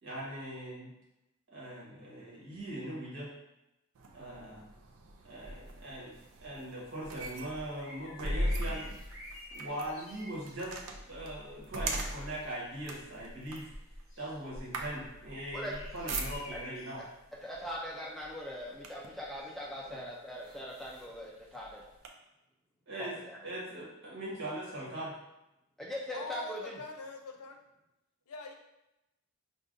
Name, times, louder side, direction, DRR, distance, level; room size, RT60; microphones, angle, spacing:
voice 1, 0.0-0.9 1.5-3.3 4.1-4.6 5.2-6.1 6.4-8.9 9.5-10.8 11.1-13.7 14.2-17.0 19.9-20.0 22.9-23.1 23.4-25.1, right 1 dB, 60° right, -6 dB, 1.3 m, -40 dB
sound 1, 3.9-16.8 17.6-17.8 18.2-19.2 19.9-20.0 20.4-22.1, right 1 dB, 75° right, 0.5 m, -40 dB
sound 2, 7.8-10.5 11.4-11.7 12.3-17.0 17.5-17.7 19.5-19.6, equal, 30° left, 1.0 m, -49 dB
voice 2, 17.4-21.8 23.0-23.4 25.8-26.8, equal, ahead, -4 dB, 0.3 m, -41 dB
voice 3, 26.1-27.6 28.3-28.5, left 2 dB, 85° left, 3 dB, 0.5 m, -42 dB
4.9 x 2.3 x 2.5 m, 0.92 s
head